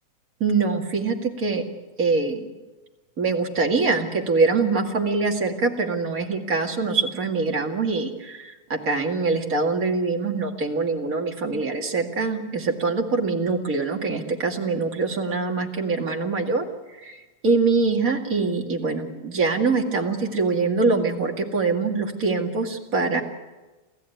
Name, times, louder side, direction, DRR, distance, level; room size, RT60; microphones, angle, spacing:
voice 1, 0.4-1.6 2.0-2.4 3.2-16.7 17.0-23.2, right 4 dB, 40° right, 2 dB, 2.6 m, -24 dB
28.5 x 14.5 x 9.3 m, 1.2 s
omnidirectional pair, 2.3 m